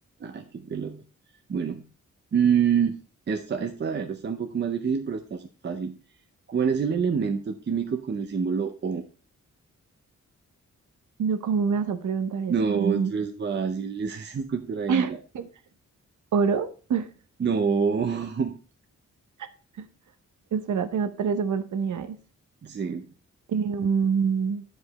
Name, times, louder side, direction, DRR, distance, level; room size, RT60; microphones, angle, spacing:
voice 1, 0.2-1.0 1.5-1.8 2.3-3.0 3.3-5.9 6.5-9.1 12.5-15.2 17.4-18.5 22.6-23.1, right 6 dB, 35° right, 0.6 m, -26 dB
voice 2, 11.2-13.1 14.9-15.5 16.3-17.1 19.4-19.5 19.8-19.9 20.5-22.2 23.5-24.6, right 6 dB, 80° right, 0.9 m, -26 dB
10.5 x 5.1 x 4.1 m
wide cardioid pair, 160°, 30 cm